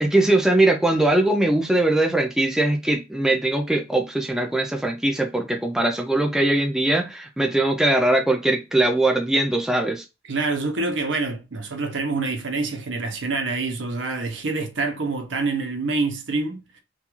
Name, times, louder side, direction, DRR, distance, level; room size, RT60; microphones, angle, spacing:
voice 1, 0.0-10.0, right 1 dB, 5° right, 0.3 m, -21 dB
voice 2, 10.3-16.8, right 3 dB, 70° right, 0.6 m, -26 dB
2.3 x 2.3 x 2.9 m
head